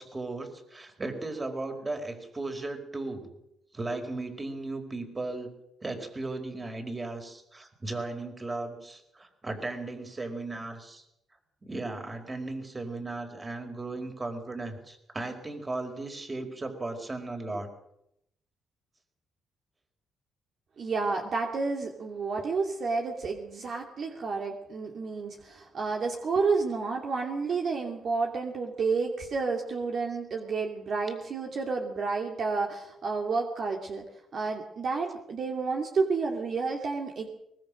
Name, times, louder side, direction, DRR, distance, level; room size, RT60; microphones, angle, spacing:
voice 1, 0.0-3.3 3.7-5.5 5.8-11.0 11.6-17.7, right 2 dB, 25° right, 5 dB, 4.8 m, -36 dB
voice 2, 20.8-34.1 34.3-37.3, right 4 dB, 55° right, 2 dB, 2.8 m, -30 dB
23.0 x 20.5 x 6.5 m, 0.79 s
cardioid pair, 90°, 0 cm